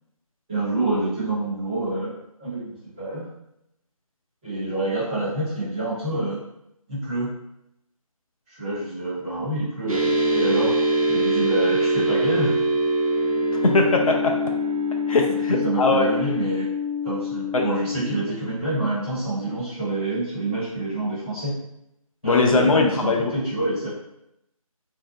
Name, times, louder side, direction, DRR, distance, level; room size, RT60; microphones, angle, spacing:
voice 1, 0.5-2.1 2.4-3.2 4.4-6.4 6.9-7.3 8.5-10.8 11.1-12.6 15.5-16.7 17.0-21.5 22.2-23.9, right 2 dB, 10° right, -14 dB, 1.0 m, -27 dB
sound 1, 9.9-18.1, equal, 65° right, 0.6 m, -24 dB
voice 2, 13.6-14.4 15.1-16.1 17.5-17.7 22.2-23.2, left 3 dB, 65° left, 1 dB, 0.5 m, -20 dB
2.6 x 2.0 x 2.7 m, 0.82 s
figure-of-eight pair, 160°, 19 cm